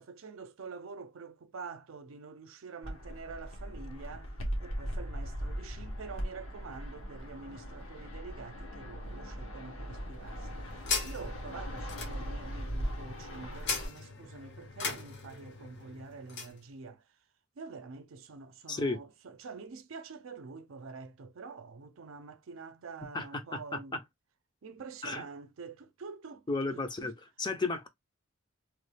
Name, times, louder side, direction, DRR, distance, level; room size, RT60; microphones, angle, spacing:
voice 1, 0.0-4.3 4.6-17.0 17.6-24.0 24.6-26.4 26.7-27.1, right 4 dB, 70° right, 0.5 m, -47 dB
Fixed-wing aircraft airplane, 2.8-13.9, equal, 75° left, 1.1 m, -39 dB
sound 1, 10.0-16.6, left 5 dB, 55° left, 0.9 m, -40 dB
voice 2, 18.7-19.0 23.1-24.0 25.0-25.2 26.5-27.9, left 3 dB, 20° left, 0.5 m, -34 dB
3.1 x 2.3 x 3.2 m
head